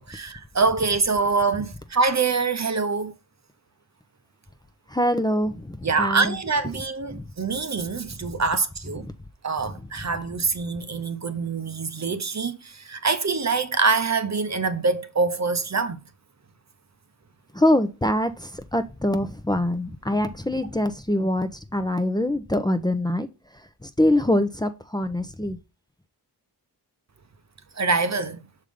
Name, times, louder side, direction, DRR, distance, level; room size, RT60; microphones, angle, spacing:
voice 1, 0.0-3.1 5.8-9.0 9.4-16.0 27.8-28.4, right 4 dB, 40° right, 0.8 m, -25 dB
voice 2, 4.9-6.4 7.1-7.3 9.0-9.1 9.7-9.8 17.5-23.3 23.5-25.6, left 1 dB, 10° left, 0.7 m, -24 dB
6.4 x 3.7 x 5.1 m
cardioid pair, 50°, 41 cm